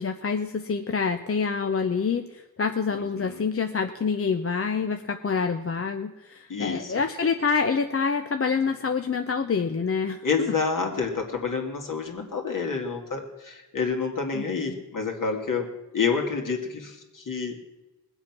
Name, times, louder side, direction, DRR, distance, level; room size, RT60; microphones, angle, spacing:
voice 1, 0.0-2.2 2.6-10.5 14.3-14.4, left 5 dB, 40° left, 6 dB, 0.7 m, -26 dB
voice 2, 2.9-3.4 6.5-7.0 10.2-15.7 15.9-17.6, left 5 dB, 60° left, 2 dB, 2.4 m, -28 dB
20.0 x 8.0 x 6.0 m, 1.0 s
wide cardioid pair, 85°, 37 cm